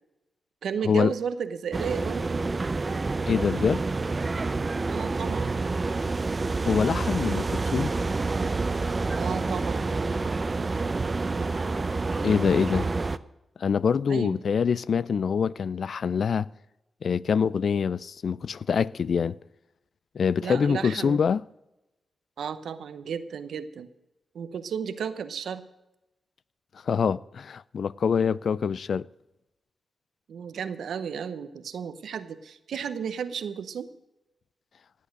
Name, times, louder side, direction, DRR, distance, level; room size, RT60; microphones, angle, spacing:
voice 1, 0.6-2.4 4.9-5.5 9.1-9.9 14.1-14.4 20.4-21.2 22.4-23.9 24.3-25.7 30.3-33.9, right 7 dB, 80° right, 0.9 m, -33 dB
sound 1, 1.7-13.2, right 3 dB, 40° right, 0.6 m, -28 dB
voice 2, 3.3-3.8 6.6-7.9 12.2-12.9 13.6-16.5 17.0-19.4 20.1-21.4 26.8-29.1, left 6 dB, 70° left, 0.4 m, -25 dB
17.0 x 8.5 x 6.5 m
supercardioid pair, 45°, 0 cm